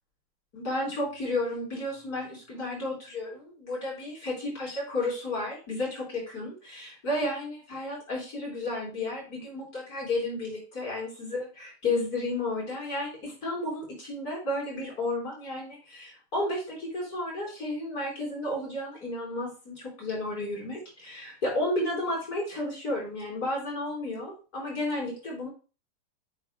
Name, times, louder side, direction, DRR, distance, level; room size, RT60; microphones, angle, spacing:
voice 1, 0.5-25.5, left 2 dB, 40° left, -3 dB, 4.8 m, -32 dB
9.2 x 7.8 x 2.2 m, 0.34 s
omnidirectional pair, 2.4 m